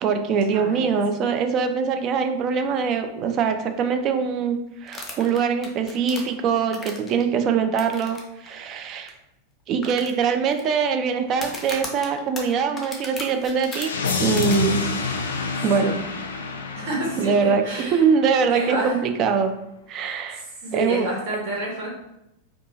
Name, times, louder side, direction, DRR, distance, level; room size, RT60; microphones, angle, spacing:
voice 1, 0.0-9.1 9.7-13.9 14.2-14.8 15.6-16.0 17.2-19.5 19.9-20.4 20.7-21.1, right 6 dB, 35° right, 7 dB, 0.3 m, -23 dB
voice 2, 0.5-1.0 15.8-16.0 16.7-18.0 18.5-19.0 20.0-21.9, right 1 dB, 50° right, -3 dB, 1.0 m, -29 dB
sound 1, 4.9-7.2 7.8-8.2 8.5-8.6 9.1-9.2 9.8-10.6 11.3-13.9 14.4-14.6, left 2 dB, 20° left, 0.5 m, -35 dB
sound 2, 13.6-18.6, left 4 dB, 65° left, 0.3 m, -28 dB
2.6 x 2.3 x 2.7 m, 0.85 s
figure-of-eight pair, 90°, 0 cm